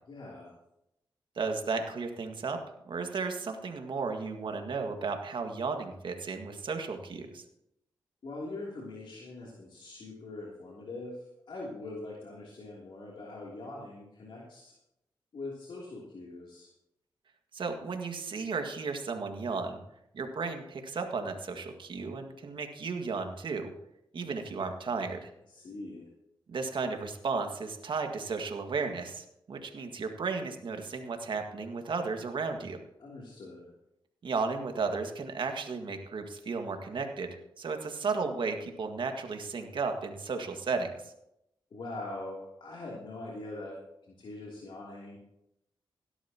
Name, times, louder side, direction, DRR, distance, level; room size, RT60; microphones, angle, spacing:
voice 1, 0.1-0.5 8.2-14.7 15.3-16.7 25.5-26.1 33.0-33.7 41.7-43.8 44.1-45.2, left 2 dB, 70° left, -4 dB, 3.1 m, -42 dB
voice 2, 1.4-2.6 2.9-7.4 17.5-19.8 20.1-23.7 24.1-25.3 26.5-32.8 34.2-37.3 37.6-40.9, right 4 dB, 70° right, 5 dB, 1.9 m, -34 dB
17.5 x 12.0 x 3.0 m, 0.80 s
cardioid pair, 65°, 9 cm